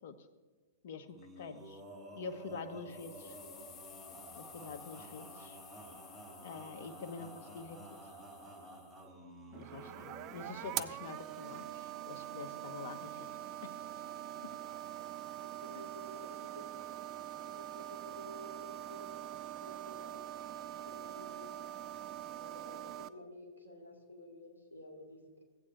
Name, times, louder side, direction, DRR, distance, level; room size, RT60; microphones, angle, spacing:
voice 1, 0.8-1.8 2.1-3.4 4.3-5.6 6.4-8.0 9.5-13.3 13.6-13.8 14.4-14.5 15.7-15.8, left 5 dB, 55° left, 10 dB, 0.9 m, -46 dB
Male singing, 1.1-10.9, right 1 dB, 10° right, 3.4 m, -51 dB
sound 1, 2.9-9.1, left 9 dB, 25° left, 0.5 m, -56 dB
sound 2, 9.5-23.1, right 13 dB, 35° right, 0.4 m, -44 dB
voice 2, 15.4-16.7 17.4-20.2 20.9-21.5 22.3-25.4, left 1 dB, 90° right, -1 dB, 2.3 m, -53 dB
16.5 x 8.5 x 2.6 m, 1.3 s
figure-of-eight pair, 110°, 0 cm